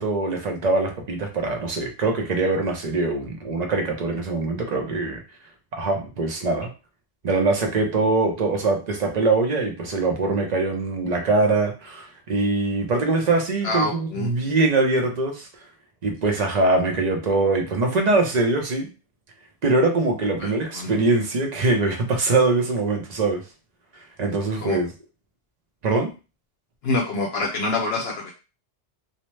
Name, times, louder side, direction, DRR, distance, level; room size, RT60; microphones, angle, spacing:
voice 1, 0.0-5.2 5.7-6.7 7.2-15.5 16.0-18.9 19.6-23.4 24.2-24.9 25.8-26.1, right 3 dB, 45° right, 3 dB, 0.6 m, -23 dB
voice 2, 13.6-14.4 20.4-21.0 24.6-24.8 26.8-28.3, left 2 dB, 65° left, -1 dB, 0.8 m, -26 dB
2.8 x 2.1 x 3.1 m, 0.31 s
omnidirectional pair, 1.2 m